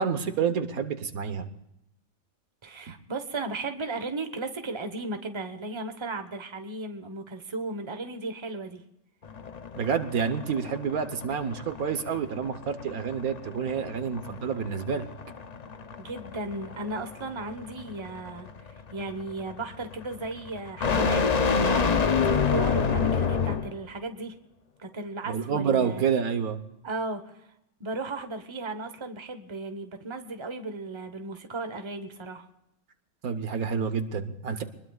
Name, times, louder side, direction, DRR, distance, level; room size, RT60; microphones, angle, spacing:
voice 1, 0.0-1.5 9.7-15.0 25.2-26.6 33.2-34.6, right 6 dB, 80° right, 9 dB, 1.6 m, -28 dB
voice 2, 2.6-8.8 16.0-21.2 21.5-24.3 24.8-26.0 26.8-27.3 27.8-32.4, right 2 dB, 20° right, 7 dB, 1.2 m, -35 dB
sound 1, 9.2-23.8, left 5 dB, 40° left, 0.6 m, -29 dB
25.0 x 20.5 x 2.4 m, 0.83 s
omnidirectional pair, 1.5 m